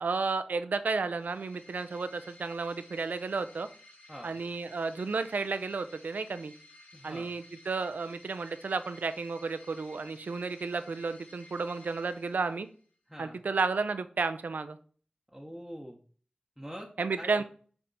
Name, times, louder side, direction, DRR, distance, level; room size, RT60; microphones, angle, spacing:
voice 1, 0.0-3.7 4.2-6.5 7.0-12.7 13.2-14.8 17.0-17.4, right 4 dB, 85° right, 11 dB, 0.5 m, -32 dB
sound 1, 1.0-12.9, left 2 dB, 85° left, 1.6 m, -56 dB
voice 2, 6.9-7.3 13.1-13.4 15.3-16.0 16.6-16.9 17.2-17.4, equal, 5° right, -1 dB, 1.0 m, -44 dB
6.9 x 3.6 x 4.1 m, 0.43 s
wide cardioid pair, 50°, 3 cm